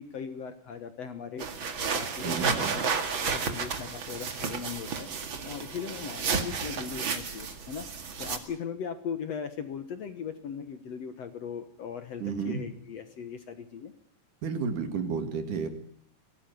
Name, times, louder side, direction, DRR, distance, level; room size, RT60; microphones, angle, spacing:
voice 1, 0.0-1.6 1.9-5.1 5.4-7.9 8.2-13.9, left 7 dB, 60° left, 10 dB, 2.0 m, -39 dB
sound 1, 1.4-8.4, right 5 dB, 40° right, 2.3 m, -32 dB
voice 2, 2.2-2.8 12.2-12.7 14.4-15.7, right 5 dB, 65° right, 8 dB, 3.6 m, -31 dB
22.5 x 17.5 x 9.3 m, 0.65 s
omnidirectional pair, 4.0 m